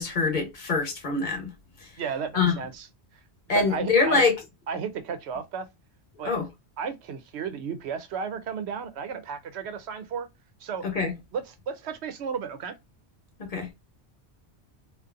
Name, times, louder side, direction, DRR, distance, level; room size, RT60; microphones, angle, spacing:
voice 1, 0.0-1.5 1.8-1.9 2.3-2.6 3.5-4.4 6.2-6.5 10.8-11.1 13.4-13.7, left 4 dB, 45° left, 1.1 m, -24 dB
voice 2, 2.0-2.9 3.5-4.2 4.7-5.7 6.2-6.3 6.8-10.3 10.6-10.8 11.3-12.8, right 6 dB, 75° right, 0.9 m, -33 dB
2.6 x 2.4 x 2.4 m
omnidirectional pair, 1.1 m